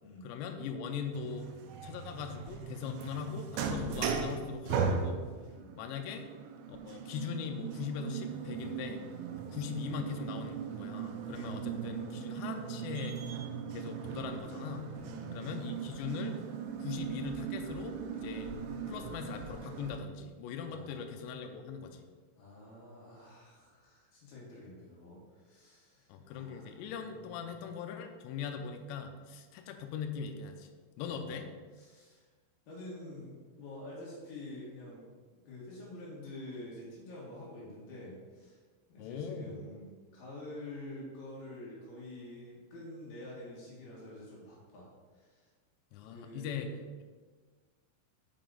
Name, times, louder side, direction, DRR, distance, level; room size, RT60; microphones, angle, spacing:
voice 1, 0.2-1.5 1.8-5.3 5.8-6.2 6.7-9.1 9.5-13.2 13.7-14.9 15.3-16.4 16.8-18.6 18.9-22.1 26.1-30.7 31.0-31.5 39.0-39.6 45.9-46.7, left 6 dB, 90° left, 5 dB, 2.5 m, -40 dB
sound 1, 1.1-20.0, right 6 dB, 85° right, 2.5 m, -38 dB
voice 2, 9.2-9.5 11.3-12.1 14.9-15.4 18.2-18.9 20.6-21.1 22.4-27.5 31.1-31.4 31.8-32.2 32.7-35.1 35.5-38.6 38.9-39.9 40.1-44.9 45.1-45.5 46.1-46.7, left 1 dB, 60° left, -5 dB, 3.1 m, -48 dB
6.7 x 6.1 x 3.8 m, 1.5 s
omnidirectional pair, 5.7 m